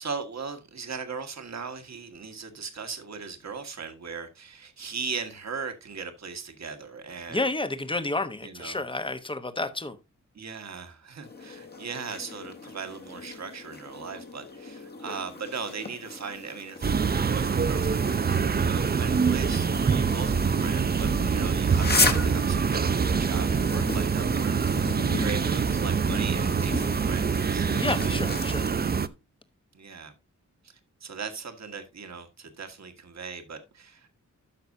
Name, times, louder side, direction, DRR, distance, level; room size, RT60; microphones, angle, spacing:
voice 1, 0.0-7.4 8.4-8.8 10.3-28.1 29.7-30.1 30.6-30.7 31.0-34.2, right 5 dB, 60° right, 1.6 m, -38 dB
voice 2, 7.3-10.0 27.8-28.7, left 2 dB, 15° left, 1.0 m, -30 dB
sound 1, 11.2-28.7, left 3 dB, 30° left, 1.4 m, -35 dB
sound 2, 16.8-29.1, right 6 dB, 30° right, 0.5 m, -25 dB
12.5 x 6.0 x 2.7 m
wide cardioid pair, 115°, 31 cm